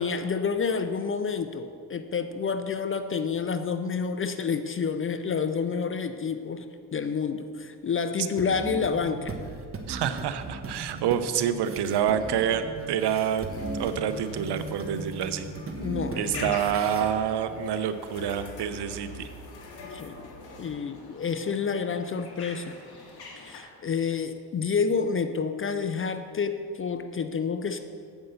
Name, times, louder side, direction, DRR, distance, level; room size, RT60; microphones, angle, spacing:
voice 1, 0.0-6.7 6.9-9.4 15.8-16.6 19.9-20.2 20.6-22.7 23.4-27.8, left 5 dB, 30° left, 9 dB, 0.4 m, -29 dB
sound 1, 8.4-17.1, right 3 dB, 30° right, 1.1 m, -38 dB
voice 2, 9.9-13.5 13.7-15.5 16.2-19.3, right 9 dB, 55° right, 11 dB, 0.7 m, -27 dB
sound 2, 13.1-20.7, left 1 dB, 65° left, 1.6 m, -47 dB
sound 3, 16.2-23.6, left 3 dB, 50° left, 1.8 m, -45 dB
8.0 x 5.4 x 6.8 m, 2.3 s
supercardioid pair, 70°, 48 cm